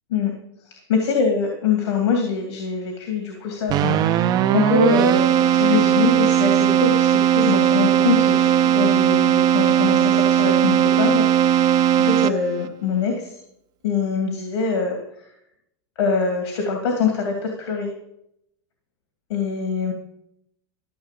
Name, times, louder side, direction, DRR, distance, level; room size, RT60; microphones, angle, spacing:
voice 1, 0.7-13.4 13.8-15.2 16.0-17.9 19.3-19.9, left 5 dB, 90° left, 2 dB, 2.6 m, -24 dB
Keyboard (musical), 3.7-12.7, right 10 dB, 30° right, 0.5 m, -18 dB
14.0 x 6.6 x 7.5 m, 0.78 s
supercardioid pair, 150°, 14 cm